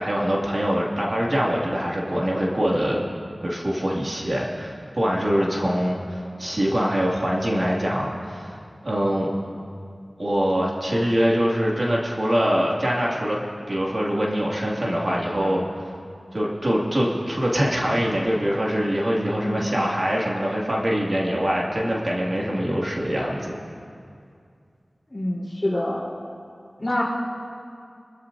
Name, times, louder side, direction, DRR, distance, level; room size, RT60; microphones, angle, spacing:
voice 1, 0.0-3.0 3.4-8.5 8.8-9.3 10.2-13.4 13.7-15.9 16.3-23.6, equal, 50° right, -4 dB, 2.3 m, -24 dB
voice 2, 19.3-19.7 25.1-26.0 26.8-27.0, left 1 dB, 30° left, -4 dB, 3.9 m, -26 dB
25.0 x 13.5 x 2.7 m, 2.3 s
wide cardioid pair, 60°, 0 cm